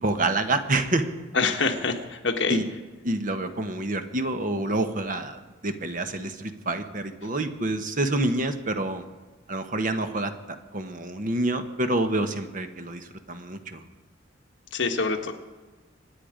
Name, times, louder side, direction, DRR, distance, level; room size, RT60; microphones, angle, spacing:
voice 1, 0.0-1.1 2.5-2.7 3.0-9.1 9.5-10.3 10.7-13.8, right 2 dB, 40° right, 8 dB, 1.1 m, -27 dB
voice 2, 1.3-2.6 14.7-15.3, left 4 dB, 60° left, 5 dB, 1.5 m, -25 dB
25.0 x 9.9 x 5.1 m, 1.3 s
head